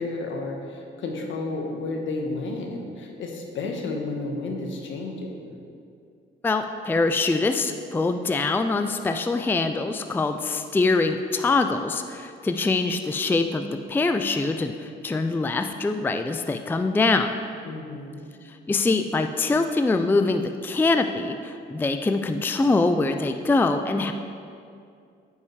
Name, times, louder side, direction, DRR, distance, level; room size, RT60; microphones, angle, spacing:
voice 1, 0.0-5.4 17.6-18.2, left 3 dB, 70° left, 2 dB, 1.3 m, -32 dB
voice 2, 6.4-17.3 18.5-24.1, left 3 dB, 10° left, 7 dB, 0.4 m, -24 dB
9.3 x 5.5 x 4.7 m, 2.4 s
cardioid pair, 90°, 20 cm